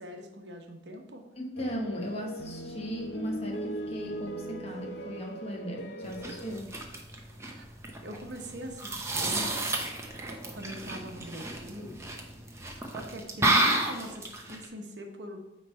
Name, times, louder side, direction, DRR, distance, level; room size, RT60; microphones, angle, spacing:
voice 1, 0.0-1.2 7.5-7.7 8.0-9.5 10.6-12.0 12.9-15.4, equal, 65° right, 3 dB, 0.9 m, -42 dB
voice 2, 1.4-6.7, equal, 35° left, 1 dB, 1.0 m, -37 dB
sound 1, 1.6-6.6, equal, 60° left, 0.7 m, -39 dB
sound 2, 6.0-14.7, right 2 dB, 15° right, 0.7 m, -31 dB
9.0 x 3.2 x 4.4 m, 0.95 s
head